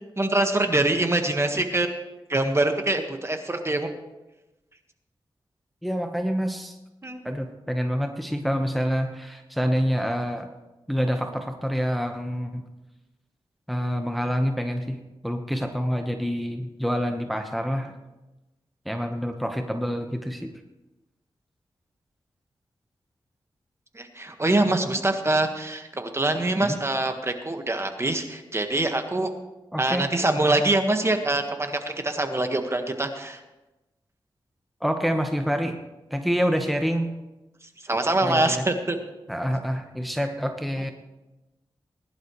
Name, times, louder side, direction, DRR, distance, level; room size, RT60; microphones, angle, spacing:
voice 1, 0.2-1.9 2.3-3.9 7.0-7.2 23.9-29.3 29.8-33.4 37.8-39.0, right 2 dB, 30° right, 5 dB, 1.5 m, -24 dB
voice 2, 5.8-6.8 7.2-10.5 10.9-12.6 13.7-17.9 18.8-20.5 26.6-26.8 29.7-30.0 34.8-35.8 36.1-37.1 38.2-38.6 39.3-40.9, equal, ahead, 4 dB, 1.1 m, -27 dB
20.5 x 11.0 x 3.2 m, 1.0 s
cardioid pair, 70°, 9 cm